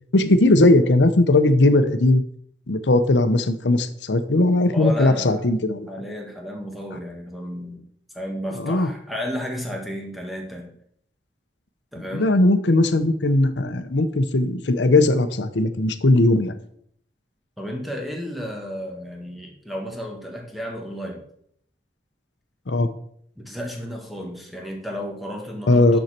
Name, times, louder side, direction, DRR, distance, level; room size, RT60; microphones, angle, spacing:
voice 1, 0.1-2.2 2.7-5.9 8.6-8.9 12.1-16.5 22.7-22.9 25.7-26.0, left 2 dB, 85° left, 9 dB, 0.8 m, -18 dB
voice 2, 4.7-5.5 5.9-7.8 8.1-10.7 11.9-12.3 17.6-21.2 23.3-26.0, equal, ahead, 0 dB, 1.7 m, -32 dB
9.6 x 6.5 x 4.4 m, 0.66 s
head